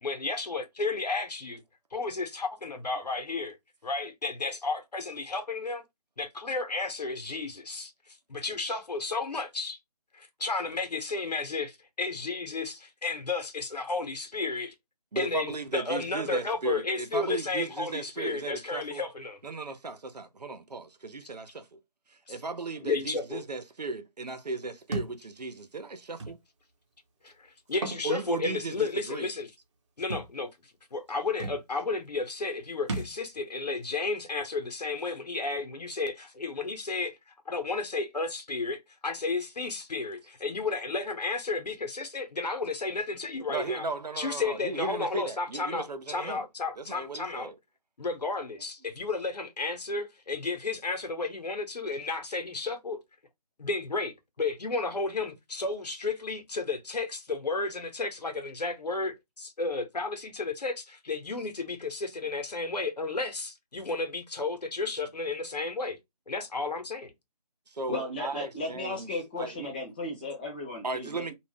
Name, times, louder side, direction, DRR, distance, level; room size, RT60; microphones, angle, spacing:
voice 1, 0.0-1.6 1.9-3.6 3.8-5.8 6.2-7.9 8.3-9.8 10.1-14.7 15.1-19.4 22.3-22.4 22.8-23.4 27.2-29.5 30.0-30.5 30.9-37.2 37.5-43.8 44.2-47.5 48.0-53.0 53.6-66.0 66.3-67.1, left 3 dB, 85° left, 0.9 m, -32 dB
voice 2, 15.1-19.0 19.4-21.8 22.3-26.4 28.0-29.3 43.5-46.4 46.8-47.6 67.7-69.7 70.8-71.3, right 3 dB, 90° right, 0.7 m, -36 dB
Thump thud, 24.9-25.2 26.2-26.3 27.7-28.0 28.5-28.6 30.1-30.3 31.1-31.2 31.4-31.6 32.9-33.2, right 3 dB, 45° right, 0.8 m, -34 dB
voice 3, 67.9-71.3, left 2 dB, 15° left, 0.6 m, -35 dB
2.5 x 2.0 x 3.4 m
figure-of-eight pair, 160°, 20 cm